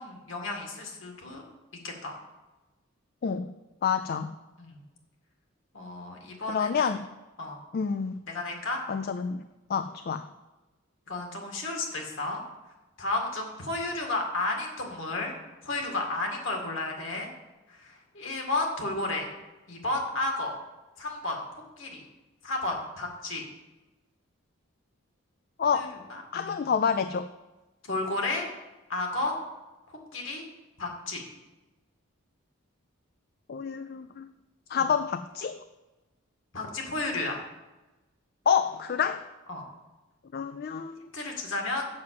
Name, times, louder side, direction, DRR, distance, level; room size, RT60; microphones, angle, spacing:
voice 1, 0.0-1.4 1.8-2.2 4.6-4.8 5.7-6.9 7.4-7.6 8.3-8.8 11.1-12.4 13.0-15.3 15.6-17.3 17.7-19.3 19.7-20.5 21.0-22.0 22.4-23.5 25.7-26.6 27.9-28.5 28.9-29.4 30.1-30.5 30.8-31.2 34.8-34.9 36.5-37.4 39.5-39.6 41.1-41.9, left 2 dB, 60° left, 1 dB, 2.0 m, -32 dB
voice 2, 3.8-4.3 6.5-7.0 7.7-8.2 8.9-9.4 9.7-10.3 25.6-25.9 26.3-27.3 33.5-34.3 34.7-35.6 38.5-39.2 40.3-41.0, left 6 dB, 45° left, 11 dB, 0.3 m, -28 dB
7.5 x 6.0 x 7.7 m, 1.1 s
head